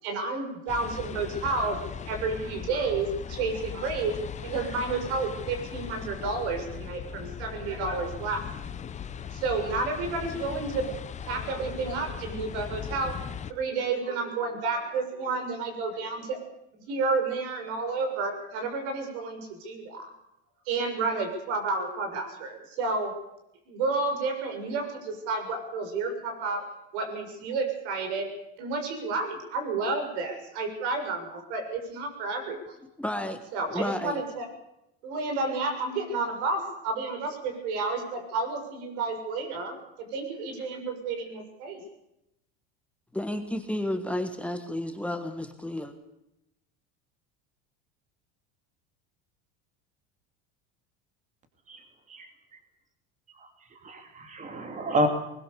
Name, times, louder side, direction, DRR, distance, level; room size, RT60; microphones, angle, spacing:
voice 1, 0.0-4.1 4.4-8.4 9.3-11.0 11.2-13.2 13.5-16.4 16.7-20.1 20.6-23.1 23.7-26.7 26.9-28.3 28.6-32.7 33.5-34.5 35.0-41.8, right 3 dB, 75° right, 5 dB, 6.8 m, -31 dB
sound 1, 0.7-13.5, left 8 dB, 20° left, 0.8 m, -39 dB
voice 2, 33.0-33.4 33.7-34.2 43.1-45.9, left 1 dB, 5° left, 6 dB, 1.5 m, -31 dB
voice 3, 53.8-55.1, equal, 20° right, 6 dB, 2.6 m, -29 dB
20.5 x 20.5 x 6.9 m, 0.84 s
supercardioid pair, 140°, 33 cm